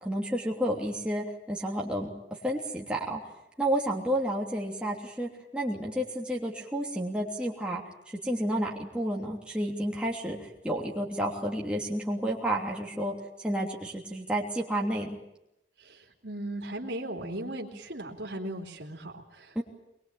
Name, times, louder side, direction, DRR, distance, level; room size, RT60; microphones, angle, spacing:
voice 1, 0.0-2.1 2.4-3.2 3.6-7.8 8.2-15.2 19.5-19.6, right 1 dB, 5° right, -3 dB, 3.1 m, -31 dB
voice 2, 15.8-19.6, right 1 dB, 75° right, 0 dB, 3.1 m, -37 dB
22.5 x 22.0 x 8.9 m, 0.84 s
head